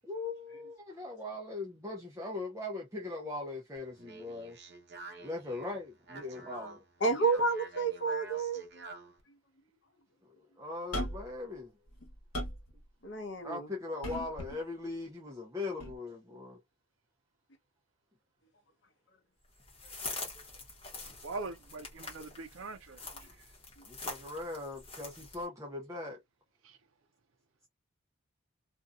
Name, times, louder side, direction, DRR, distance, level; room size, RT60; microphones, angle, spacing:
voice 1, 0.0-4.6 5.2-6.8 10.2-11.7 13.4-16.6 23.9-26.2, left 2 dB, 15° right, 0.6 m, -40 dB
Speech, 3.8-9.2, right 3 dB, 50° right, 0.9 m, -49 dB
voice 2, 7.0-8.6 13.0-13.7, right 3 dB, 55° left, 0.8 m, -30 dB
sound 1, 10.9-11.4 11.9-12.7 14.0-14.6 15.8-16.0, equal, 90° left, 1.0 m, -37 dB
sound 2, 19.6-25.5, left 3 dB, 25° left, 0.9 m, -45 dB
voice 3, 21.2-23.0 26.6-26.8, right 3 dB, 75° right, 0.5 m, -42 dB
2.6 x 2.3 x 2.3 m
head